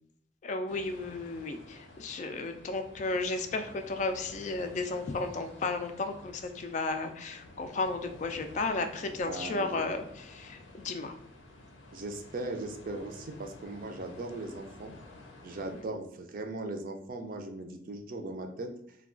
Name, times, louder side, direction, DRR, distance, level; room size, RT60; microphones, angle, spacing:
voice 1, 0.4-11.1 15.7-15.8, left 3 dB, 40° left, 7 dB, 0.3 m, -34 dB
sound 1, 0.7-15.8, left 2 dB, 85° left, 0.6 m, -52 dB
voice 2, 9.3-9.9 11.9-14.9 15.4-19.0, right 2 dB, 50° right, 4 dB, 0.4 m, -39 dB
2.3 x 2.2 x 3.6 m, 0.74 s
head